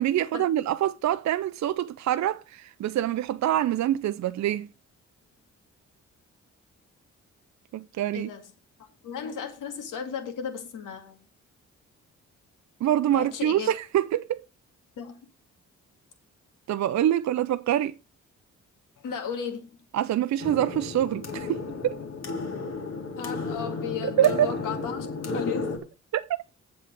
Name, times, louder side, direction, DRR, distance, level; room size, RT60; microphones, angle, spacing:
voice 1, 0.0-4.7 7.7-8.3 12.8-14.4 16.7-17.9 19.9-22.0 24.0-24.5 26.1-26.4, right 12 dB, 60° right, 0.5 m, -25 dB
voice 2, 8.1-8.5 8.8-11.2 13.1-13.7 15.0-15.2 19.0-19.7 23.2-25.8, left 7 dB, 80° left, 2.1 m, -35 dB
sound 1, 20.4-25.8, left 3 dB, 55° left, 2.3 m, -33 dB
7.6 x 7.3 x 5.1 m
supercardioid pair, 60°, 31 cm